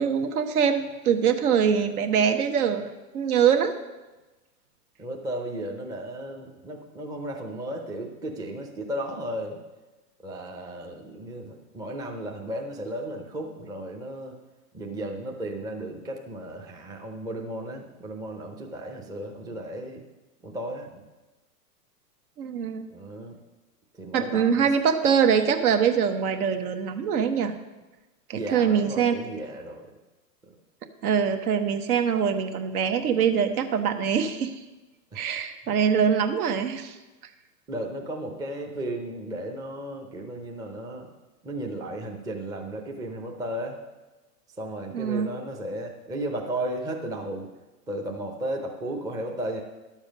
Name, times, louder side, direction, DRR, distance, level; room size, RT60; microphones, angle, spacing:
voice 1, 0.0-3.7 22.4-22.8 24.1-27.5 28.3-29.1 31.0-34.5 35.1-37.0 44.9-45.3, right 7 dB, 60° right, 7 dB, 1.2 m, -23 dB
voice 2, 5.0-9.6 10.2-14.4 14.7-20.0 20.4-21.0 22.9-23.4 23.9-24.7 28.3-29.9 35.1-35.2 37.7-41.1 41.4-43.8 44.6-47.5 47.9-49.6, right 1 dB, 10° right, 1 dB, 0.6 m, -34 dB
11.0 x 7.2 x 5.2 m, 1.1 s
hypercardioid pair, 130°, 49 cm